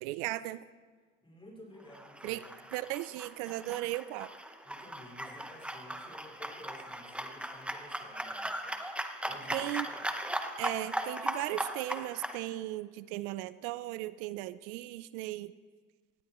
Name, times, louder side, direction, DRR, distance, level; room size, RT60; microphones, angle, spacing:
voice 1, 0.0-0.6 2.2-2.4 2.7-4.3 9.5-9.9 10.6-15.5, right 17 dB, 85° right, 16 dB, 0.5 m, -36 dB
voice 2, 1.2-2.4 4.6-8.5 9.2-10.0, left 1 dB, 15° left, -2 dB, 4.9 m, -53 dB
sound 1, 1.9-12.4, right 1 dB, 5° right, 0.9 m, -38 dB
18.5 x 15.5 x 3.0 m, 1.5 s
supercardioid pair, 100°, 31 cm